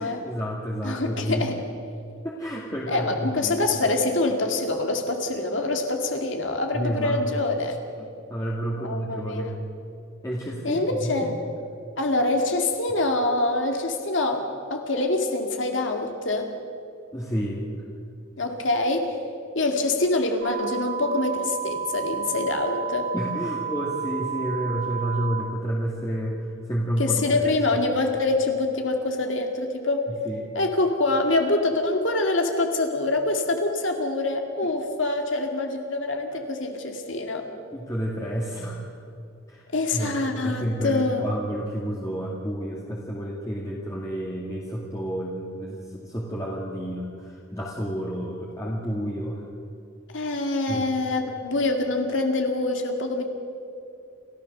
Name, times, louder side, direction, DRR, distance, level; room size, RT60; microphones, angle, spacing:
voice 1, 0.0-1.5 2.2-3.7 6.7-7.2 8.0-9.5 10.2-10.8 17.1-17.6 23.1-26.4 26.7-27.3 30.3-30.5 37.7-38.8 39.5-39.6 39.9-40.1 40.4-49.4 50.1-50.2 50.7-50.8, equal, 15° left, -4 dB, 2.2 m, -30 dB
voice 2, 0.8-1.6 2.9-7.8 8.8-9.5 10.6-11.4 12.0-16.5 18.4-19.2 19.5-23.1 27.0-30.1 30.5-37.5 39.7-41.3 50.1-53.3, left 2 dB, 65° left, 3 dB, 2.3 m, -25 dB
sound 1, 20.4-25.4, right 7 dB, 60° right, 2.9 m, -31 dB
29.0 x 14.0 x 6.8 m, 2.5 s
head